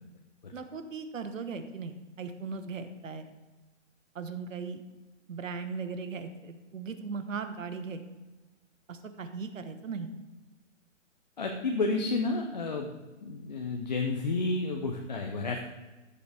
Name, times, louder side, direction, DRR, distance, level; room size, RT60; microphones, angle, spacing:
voice 1, 0.5-3.3 4.1-4.8 5.3-8.0 8.9-10.1, right 5 dB, 80° right, 8 dB, 1.4 m, -38 dB
voice 2, 11.4-12.9 13.2-15.6, left 3 dB, 35° left, 2 dB, 0.6 m, -31 dB
15.0 x 6.8 x 3.5 m, 1.2 s
hypercardioid pair, 175°, 38 cm